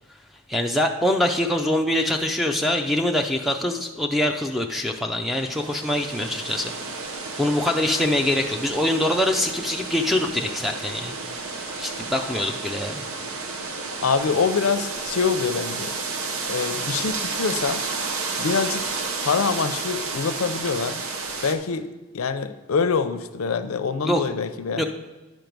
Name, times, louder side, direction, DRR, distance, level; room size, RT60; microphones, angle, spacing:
voice 1, 0.5-7.0 7.4-11.2 11.5-13.0 24.0-24.2 24.8-24.9, left 1 dB, ahead, 4 dB, 0.4 m, -24 dB
sound 1, 5.3-21.5, right 4 dB, 90° right, 0.8 m, -31 dB
voice 2, 14.0-15.9 16.5-17.8 18.4-18.8 19.2-21.0 21.4-21.9 22.1-24.8, left 5 dB, 90° left, 11 dB, 0.5 m, -25 dB
11.0 x 4.6 x 5.2 m, 1.2 s
head